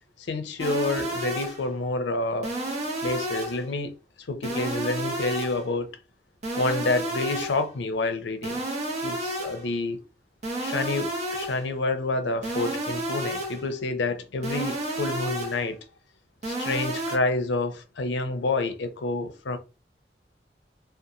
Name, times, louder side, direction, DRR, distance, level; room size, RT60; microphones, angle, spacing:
voice 1, 0.3-2.5 3.0-3.9 4.2-5.9 6.5-8.6 9.0-10.0 10.6-15.8 16.4-19.6, left 2 dB, 85° left, 0.5 m, -28 dB
sound 1, 0.6-1.7 2.4-3.7 4.4-5.7 6.4-7.7 8.4-9.7 10.4-11.7 12.4-13.7 14.4-15.7 16.4-17.2, right 1 dB, 40° right, 0.7 m, -31 dB
2.8 x 2.3 x 2.5 m
head